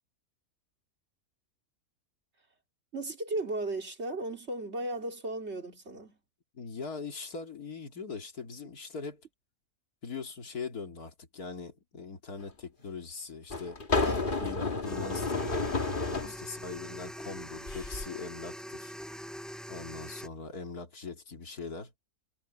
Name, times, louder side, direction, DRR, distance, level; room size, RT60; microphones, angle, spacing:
voice 1, 2.9-6.2 14.0-14.4 16.1-16.5, right 2 dB, 45° right, 2.9 m, -36 dB
voice 2, 6.5-9.2 10.0-13.8 14.4-18.9 19.7-21.9, left 5 dB, 75° left, 3.0 m, -41 dB
sound 1, 12.4-12.5 13.5-16.3 17.6-18.1, left 3 dB, 35° left, 1.9 m, -31 dB
sound 2, 14.8-20.3, equal, ahead, 7.4 m, -43 dB
omnidirectional pair, 1.6 m